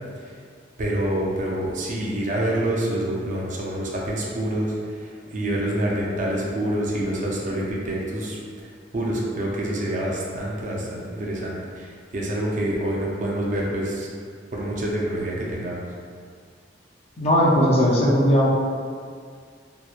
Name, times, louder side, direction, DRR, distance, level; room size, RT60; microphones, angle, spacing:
voice 1, 0.8-8.4 8.9-11.9 12.1-14.1 14.5-15.8, right 1 dB, 45° right, -4 dB, 0.4 m, -27 dB
voice 2, 17.2-18.5, equal, 35° left, -4 dB, 0.4 m, -18 dB
2.8 x 2.1 x 2.3 m, 2.1 s
head